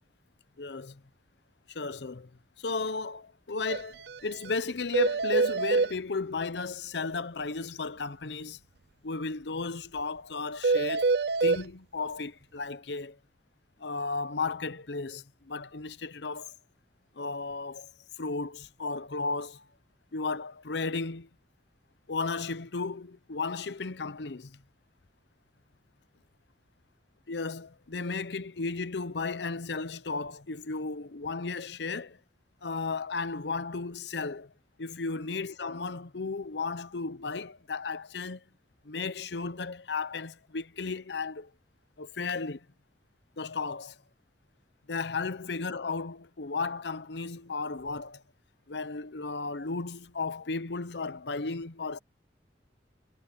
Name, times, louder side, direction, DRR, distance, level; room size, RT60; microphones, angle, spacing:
voice 1, 0.6-1.0 1.7-2.3 2.6-8.6 9.0-11.1 11.4-13.2 13.8-16.6 17.2-17.9 18.2-19.6 20.1-21.3 22.1-24.6 27.3-32.2 32.6-34.5 34.8-38.4 38.8-41.5 42.0-42.7 43.4-44.0 44.9-48.2 48.7-52.0, left 4 dB, 75° left, 0.8 m, -34 dB
sound 1, 3.7-3.8 4.1-4.2 4.5-4.6 4.9-5.9 10.6-11.6, right 4 dB, 65° right, 0.6 m, -25 dB
head